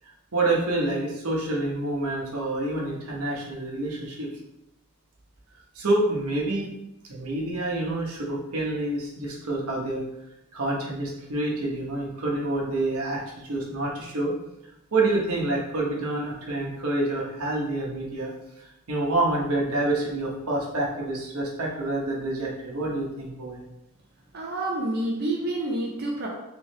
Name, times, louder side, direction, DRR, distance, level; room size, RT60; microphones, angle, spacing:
voice 1, 0.3-4.3 5.7-6.7 7.1-10.0 10.5-14.3 14.9-18.3 18.9-23.6, right 2 dB, 85° right, -2 dB, 1.0 m, -27 dB
voice 2, 24.3-26.3, right 1 dB, 45° right, -2 dB, 0.5 m, -28 dB
3.3 x 3.3 x 3.2 m, 0.90 s
head